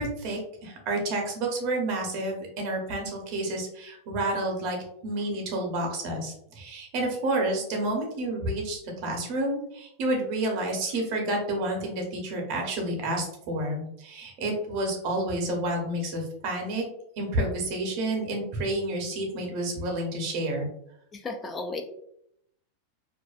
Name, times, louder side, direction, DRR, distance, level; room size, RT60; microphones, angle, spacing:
voice 1, 0.0-4.8 5.0-16.8 17.2-20.7, right 1 dB, 55° right, 1 dB, 0.9 m, -30 dB
voice 2, 21.1-21.8, left 3 dB, 20° left, 5 dB, 0.3 m, -34 dB
2.5 x 2.2 x 2.4 m, 0.73 s
hypercardioid pair, 115°, 0 cm